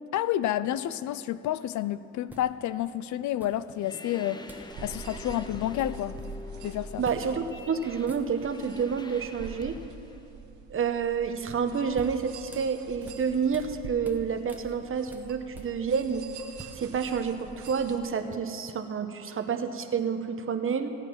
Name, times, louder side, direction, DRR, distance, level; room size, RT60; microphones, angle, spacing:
voice 1, 0.1-4.4 4.8-6.2 6.6-7.0, left 12 dB, 75° left, 15 dB, 0.5 m, -30 dB
sound 1, 1.6-1.8 2.3-2.9 3.4-4.0 4.5-4.8 5.0-5.2 5.5-6.4 7.0-7.3 7.6-7.7 8.0-8.7 11.5-13.8 14.0-16.1 16.4-18.0, right 1 dB, 5° right, 1.2 m, -49 dB
sound 2, 3.8-10.2, left 3 dB, 15° left, 0.7 m, -44 dB
sound 3, 4.7-18.0, right 6 dB, 75° right, 1.1 m, -47 dB
voice 2, 7.0-9.8 10.7-16.2 16.7-20.9, right 6 dB, 45° right, 8 dB, 1.0 m, -29 dB
16.0 x 8.9 x 5.9 m, 2.7 s
cardioid pair, 90°, 30 cm